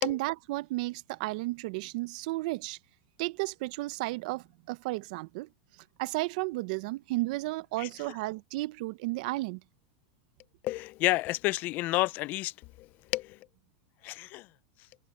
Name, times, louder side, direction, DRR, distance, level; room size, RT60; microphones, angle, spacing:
voice 1, 0.0-2.8 3.2-5.5 6.0-9.6, right 21 dB, 60° right, 0.7 m, -33 dB
voice 2, 10.6-13.4 14.0-14.5, left 19 dB, 40° left, 0.5 m, -30 dB
supercardioid pair, 140°, 5 cm